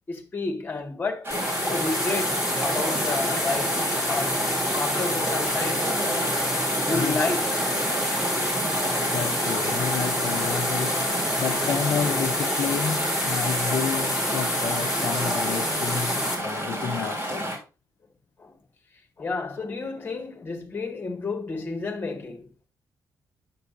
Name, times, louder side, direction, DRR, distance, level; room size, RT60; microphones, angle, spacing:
voice 1, 0.1-4.4 4.8-5.9 6.8-7.5 18.4-18.5 19.2-22.5, left 3 dB, 25° left, 1.7 m, -31 dB
Chatter / Stream, 1.2-17.6, equal, 30° right, 3.6 m, -30 dB
sound 1, 1.3-16.4, left 1 dB, 5° right, 3.3 m, -27 dB
voice 2, 6.9-7.3 9.1-11.1 11.4-17.6, left 7 dB, 60° left, 0.7 m, -30 dB
9.5 x 6.8 x 2.6 m
cardioid pair, 145°, 7 cm